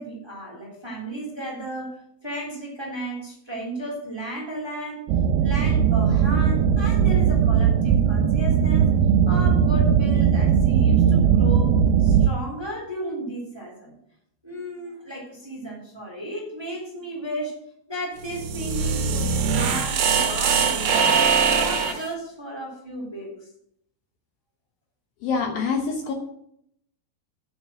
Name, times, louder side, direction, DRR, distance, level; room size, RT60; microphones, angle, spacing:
voice 1, 0.0-2.0 2.2-5.1 5.4-8.9 9.2-13.9 14.4-17.6 17.9-21.2 21.5-23.3, right 1 dB, 5° right, -1 dB, 2.8 m, -34 dB
sound 1, 5.1-12.3, right 7 dB, 85° right, 2.7 m, -19 dB
sound 2, 18.2-22.1, right 6 dB, 70° right, 2.9 m, -22 dB
voice 2, 25.2-26.1, left 5 dB, 70° left, 3 dB, 2.6 m, -25 dB
9.2 x 7.3 x 7.4 m, 0.74 s
omnidirectional pair, 4.7 m